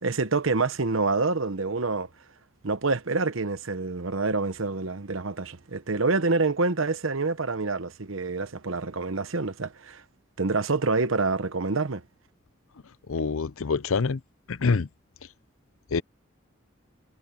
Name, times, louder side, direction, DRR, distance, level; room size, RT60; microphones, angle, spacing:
voice 1, 0.0-2.1 2.6-10.0 10.4-12.0, right 3 dB, 75° right, 1.1 m, -27 dB
voice 2, 13.1-14.2 14.5-14.9 15.9-16.0, left 4 dB, 85° left, 0.6 m, -25 dB
head